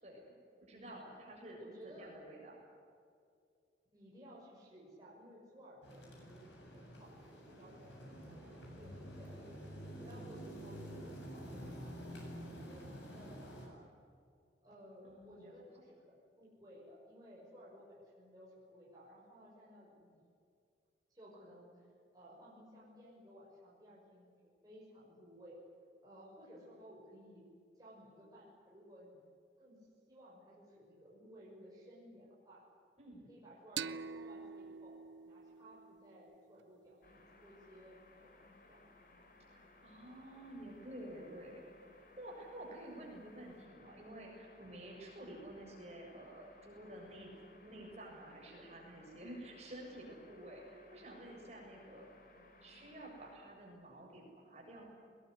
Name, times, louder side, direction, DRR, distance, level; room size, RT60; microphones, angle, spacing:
voice 1, 0.6-2.6 15.0-15.9 33.0-33.3 39.5-47.3 47.6-52.1 52.6-54.8, right 1 dB, 35° right, -1 dB, 7.2 m, -51 dB
voice 2, 1.6-2.1 3.9-6.0 6.7-9.6 10.0-13.9 14.6-20.2 21.1-21.9 22.1-24.3 24.6-25.6 26.0-27.4 27.8-29.2 29.6-32.6 33.3-34.9 35.2-38.3 38.6-38.8, equal, 20° right, -5 dB, 6.5 m, -57 dB
sound 1, 5.8-13.7, equal, 90° left, 7.7 m, -49 dB
sound 2, 33.8-37.1, right 6 dB, 85° right, 0.6 m, -46 dB
sound 3, 37.0-53.4, left 2 dB, 50° left, 3.5 m, -62 dB
21.5 x 21.5 x 9.9 m, 2.3 s
head